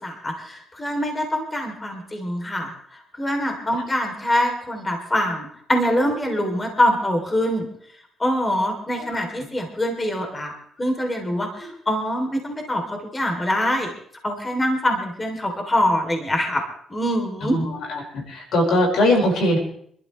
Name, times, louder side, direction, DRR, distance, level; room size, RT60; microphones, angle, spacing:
voice 1, 0.0-7.7 8.2-10.5 10.8-13.9 14.2-16.6 16.9-17.6, equal, 20° left, 2 dB, 3.2 m, -24 dB
voice 2, 18.3-19.6, left 1 dB, 75° left, 0 dB, 5.2 m, -19 dB
27.0 x 12.5 x 3.3 m, 0.64 s
cardioid pair, 90°, 0 cm